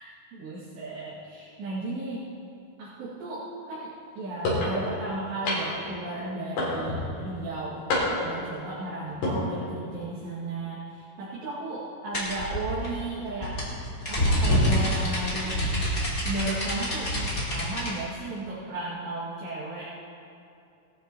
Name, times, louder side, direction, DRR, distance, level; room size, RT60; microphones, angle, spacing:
voice 1, 0.0-2.3 2.8-3.9 4.2-7.8 8.2-13.5 14.1-15.6 16.2-19.9, right 2 dB, 90° right, -11 dB, 4.7 m, -35 dB
sound 1, 4.4-4.7 5.5-5.9 6.6-7.1 7.9-8.4 9.1-9.4, left 1 dB, 85° left, 5.0 m, -27 dB
sound 2, 12.1-17.9, equal, 25° left, 2.7 m, -26 dB
18.5 x 13.5 x 3.1 m, 2.6 s
omnidirectional pair, 4.8 m